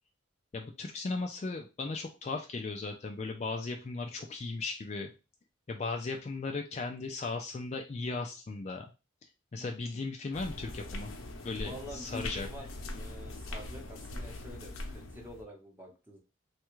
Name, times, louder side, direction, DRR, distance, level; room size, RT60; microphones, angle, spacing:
voice 1, 0.5-5.1 5.7-8.9 9.5-11.1 11.4-12.5, left 3 dB, 35° left, 3 dB, 0.3 m, -37 dB
sound 1, 10.3-15.4, left 1 dB, 85° left, 0.7 m, -41 dB
voice 2, 11.6-16.2, equal, 10° right, -1 dB, 0.8 m, -47 dB
3.3 x 2.3 x 3.0 m, 0.30 s
head